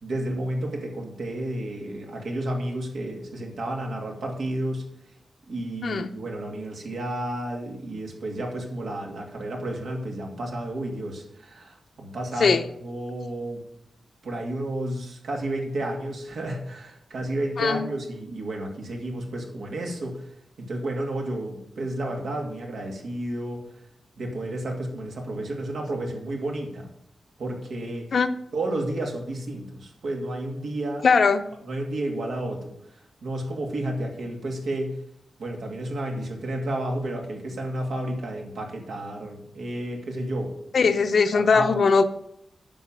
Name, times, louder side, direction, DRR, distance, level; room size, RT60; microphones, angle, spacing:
voice 1, 0.0-4.9 5.5-13.6 14.2-20.2 20.6-23.6 24.2-26.9 27.4-28.1 28.5-31.0 31.6-35.0 35.4-40.5 40.8-40.9 41.3-41.8, right 1 dB, 80° right, 1 dB, 2.4 m, -31 dB
voice 2, 17.6-17.9 28.1-28.3 31.0-31.4 40.7-42.0, left 5 dB, 60° left, 9 dB, 0.8 m, -20 dB
10.0 x 5.9 x 7.4 m, 0.77 s
wide cardioid pair, 105°, 0 cm